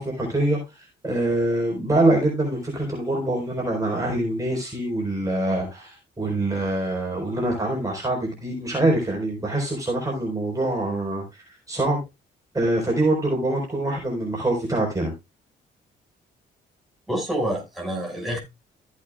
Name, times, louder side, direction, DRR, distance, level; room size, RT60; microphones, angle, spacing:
voice 1, 0.0-12.0 12.5-15.1, right 1 dB, 15° right, 4.5 m, -24 dB
voice 2, 17.1-18.4, right 1 dB, ahead, 5.8 m, -27 dB
15.0 x 8.5 x 2.4 m
cardioid pair, 90°, 20 cm